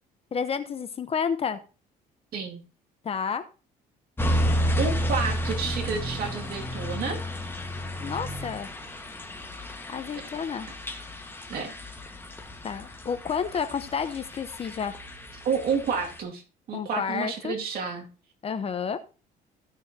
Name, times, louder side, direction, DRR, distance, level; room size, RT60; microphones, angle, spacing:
voice 1, 0.3-1.6 3.0-3.4 8.0-8.7 9.9-10.7 12.6-14.9 16.7-17.6 18.4-19.0, left 6 dB, 35° left, 11 dB, 0.9 m, -30 dB
sound 1, 4.2-16.2, equal, 15° left, 1.4 m, -32 dB
voice 2, 4.7-7.2 10.2-10.3 11.5-11.7 15.4-16.4 16.7-18.1, right 5 dB, 60° right, 2 dB, 2.2 m, -30 dB
16.0 x 6.3 x 2.8 m, 0.33 s
cardioid pair, 110°, 17 cm